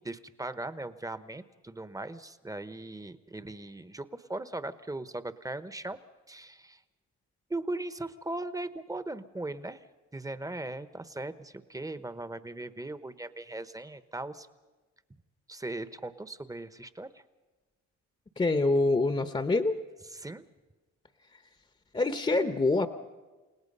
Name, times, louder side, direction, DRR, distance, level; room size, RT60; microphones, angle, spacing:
voice 1, 0.0-6.0 6.3-6.8 7.5-9.8 10.1-14.5 15.5-17.1 20.1-20.5, right 2 dB, 10° right, 13 dB, 1.0 m, -39 dB
voice 2, 18.4-19.8 21.9-22.9, left 2 dB, 20° left, 9 dB, 0.9 m, -25 dB
30.0 x 18.0 x 5.5 m, 1.2 s
cardioid pair, 90°, 30 cm